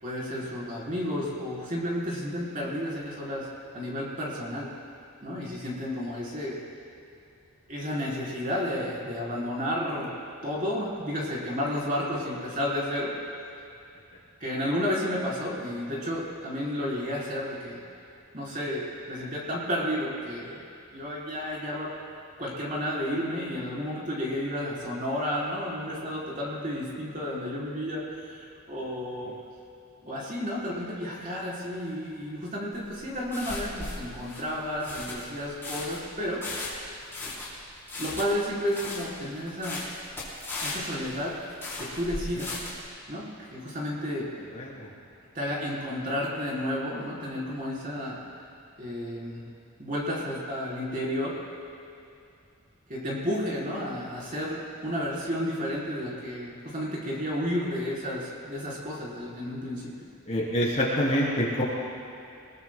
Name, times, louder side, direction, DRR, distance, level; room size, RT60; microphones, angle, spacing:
voice 1, 0.0-3.5 3.7-4.7 5.2-6.6 7.7-10.1 10.4-13.1 14.4-17.8 18.3-20.6 20.9-21.9 22.4-29.3 30.0-36.4 38.0-39.8 40.6-41.4 41.8-42.7 43.1-44.3 45.3-48.2 48.8-49.4 49.8-51.4 52.9-60.1, equal, 35° right, -5 dB, 3.8 m, -32 dB
sound 1, 32.7-42.9, left 2 dB, 10° left, 3.8 m, -37 dB
voice 2, 44.5-44.9 60.3-61.6, equal, 30° left, -6 dB, 3.3 m, -26 dB
24.5 x 20.5 x 2.2 m, 2.6 s
head